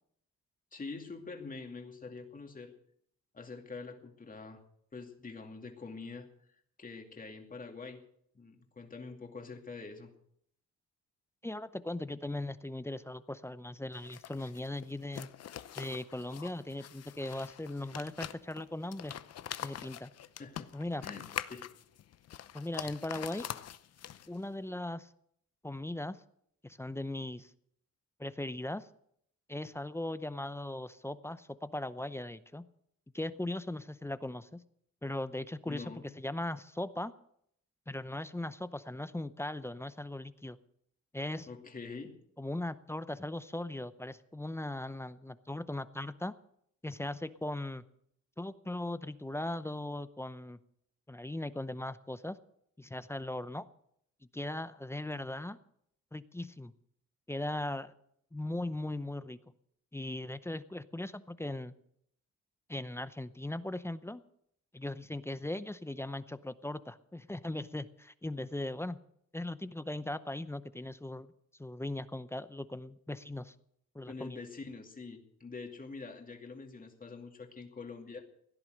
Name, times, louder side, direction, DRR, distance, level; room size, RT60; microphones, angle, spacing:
voice 1, 0.7-2.7 3.3-4.6 4.9-8.0 8.3-10.1 20.4-20.7 21.0-21.7 35.7-36.1 41.5-42.2 74.1-78.2, left 4 dB, 30° left, 4 dB, 2.5 m, -45 dB
voice 2, 11.4-15.3 15.8-19.1 19.6-20.1 20.7-21.0 22.5-23.5 24.3-25.1 25.6-26.2 26.6-27.5 28.2-28.9 29.5-32.6 33.1-34.6 35.0-37.1 37.9-40.6 41.1-41.5 42.4-46.3 46.8-47.8 48.4-50.6 51.1-52.4 52.8-53.7 54.3-55.6 56.1-56.7 57.3-57.9 58.3-59.4 59.9-61.7 62.7-64.2 64.7-69.0 69.3-71.3 71.6-73.5 73.9-74.4, left 1 dB, 10° left, 14 dB, 0.7 m, -39 dB
sound 1, 13.9-24.5, left 10 dB, 55° left, 0.8 m, -44 dB
17.0 x 10.5 x 6.5 m, 0.70 s
cardioid pair, 90°, 30 cm